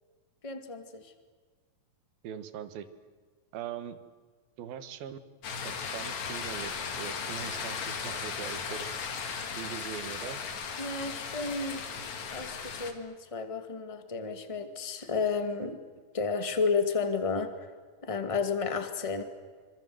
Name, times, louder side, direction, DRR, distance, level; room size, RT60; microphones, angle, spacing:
voice 1, 0.4-1.1 10.8-11.8 12.3-15.8 16.1-17.5 18.0-19.2, left 4 dB, 15° left, 8 dB, 1.3 m, -32 dB
voice 2, 2.2-2.9 3.5-4.0 4.6-5.2 5.6-8.9 9.6-10.4, right 9 dB, 90° right, 11 dB, 3.3 m, -41 dB
sound 1, 5.4-12.9, left 6 dB, 55° left, 3.2 m, -36 dB
27.0 x 26.0 x 7.9 m, 1.5 s
omnidirectional pair, 4.1 m